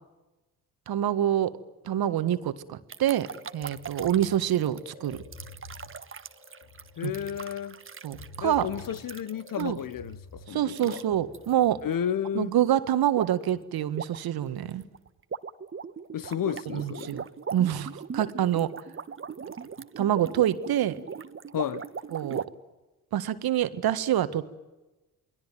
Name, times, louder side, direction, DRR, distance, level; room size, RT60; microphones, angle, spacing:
voice 1, 0.9-1.6 1.8-3.3 3.5-5.2 7.0-7.1 8.0-8.7 9.6-9.8 10.5-11.8 12.3-14.8 16.7-17.2 17.5-18.7 20.0-21.0 22.1-22.4 23.1-24.6, right 11 dB, 55° right, 1.7 m, -26 dB
sound 1, 2.9-9.9 10.7-11.0 11.3-11.5 13.1-13.5 13.8-22.5, right 6 dB, 30° right, 1.3 m, -39 dB
sound 2, 3.3-11.9, left 2 dB, 65° left, 3.9 m, -49 dB
voice 2, 7.0-7.8 8.4-11.0 11.8-12.5 16.1-17.2 21.5-21.9, left 9 dB, 50° left, 1.3 m, -32 dB
29.0 x 21.5 x 9.3 m
hypercardioid pair, 50°, 42 cm